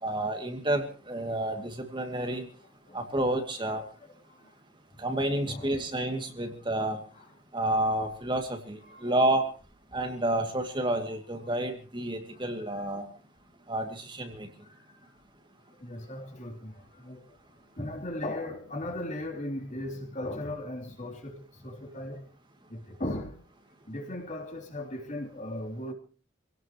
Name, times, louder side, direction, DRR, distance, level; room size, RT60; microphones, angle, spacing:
voice 1, 0.0-2.5 2.9-3.8 5.0-7.0 7.5-9.5 9.9-13.1 13.7-14.5, right 1 dB, 25° right, 2.5 m, -30 dB
voice 2, 5.4-5.8 7.1-7.3 8.8-9.2 11.4-11.6 12.3-12.8 14.6-15.1 15.8-17.4 17.7-22.3 22.7-23.4 23.9-25.9, left 1 dB, 40° left, 3.4 m, -38 dB
26.5 x 17.5 x 3.1 m
head